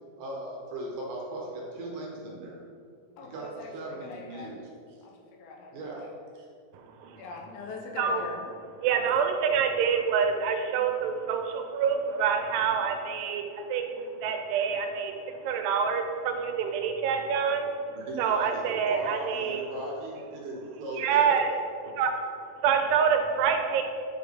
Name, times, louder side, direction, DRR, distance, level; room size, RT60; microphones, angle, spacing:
voice 1, 0.2-2.6 3.2-4.6 4.9-5.0 5.7-6.5 17.9-21.4, right 1 dB, 65° right, -2 dB, 2.5 m, -38 dB
voice 2, 3.2-4.5 5.0-6.1 7.2-8.5, left 4 dB, 75° left, 0 dB, 2.7 m, -43 dB
voice 3, 8.8-17.7 18.2-19.6 21.0-21.6 21.8-22.1 22.6-23.8, right 6 dB, 85° right, 5 dB, 2.8 m, -26 dB
9.2 x 4.6 x 5.2 m, 2.4 s
omnidirectional pair, 4.7 m